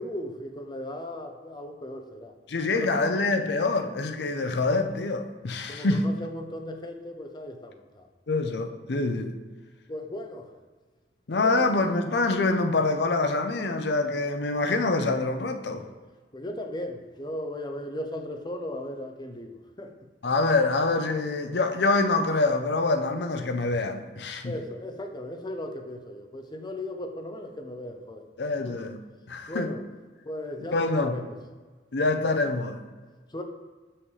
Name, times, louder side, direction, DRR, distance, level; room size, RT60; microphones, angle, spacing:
voice 1, 0.0-2.3 2.7-3.1 5.7-8.1 9.9-10.6 11.4-11.7 16.3-19.9 24.4-28.3 28.6-28.8 29.5-29.8 30.2-31.4 33.3-33.4, left 1 dB, 25° left, 5 dB, 0.7 m, -37 dB
voice 2, 2.5-6.1 8.3-9.3 11.3-15.8 20.2-24.5 28.4-29.0 29.3-29.7 30.7-31.2 31.9-32.8, left 3 dB, 65° left, 6 dB, 0.6 m, -25 dB
6.9 x 5.7 x 3.2 m, 1.4 s
head